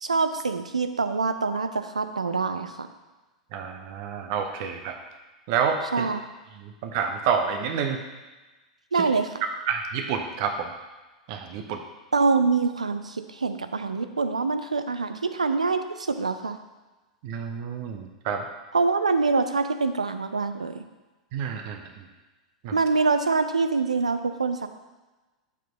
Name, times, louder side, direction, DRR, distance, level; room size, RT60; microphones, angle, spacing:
voice 1, 0.0-2.9 5.9-6.2 8.9-9.3 12.1-16.6 18.7-20.8 22.7-24.7, right 4 dB, 80° right, 9 dB, 0.4 m, -25 dB
voice 2, 3.5-4.9 5.5-6.1 6.6-8.0 8.9-9.1 9.7-10.7 11.3-11.8 17.2-18.5 21.3-21.8 22.6-22.8, right 6 dB, 50° right, 5 dB, 0.7 m, -28 dB
7.1 x 4.6 x 3.9 m, 1.2 s
figure-of-eight pair, 90°, 4 cm